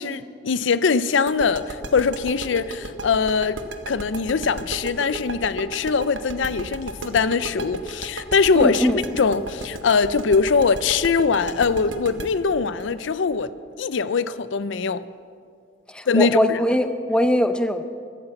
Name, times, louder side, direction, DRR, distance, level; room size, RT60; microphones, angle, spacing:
voice 1, 0.0-3.6 3.9-8.9 9.1-13.5 13.8-15.0 16.1-16.6, left 5 dB, 75° left, 0.5 m, -22 dB
sound 1, 1.3-14.0, right 2 dB, 85° right, 1.1 m, -34 dB
voice 2, 8.6-9.0 15.9-17.8, equal, 5° left, 0.6 m, -21 dB
14.0 x 12.0 x 7.8 m
head